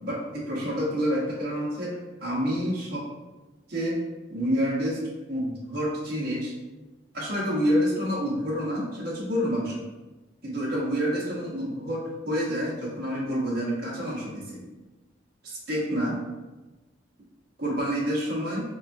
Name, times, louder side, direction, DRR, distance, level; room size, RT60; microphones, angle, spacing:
voice 1, 0.0-3.1 3.7-4.0 4.3-5.0 5.3-6.5 7.1-9.8 10.4-14.6 15.4-16.2 17.6-18.6, equal, 55° right, -6 dB, 1.0 m, -28 dB
4.8 x 2.3 x 2.5 m, 1.1 s
head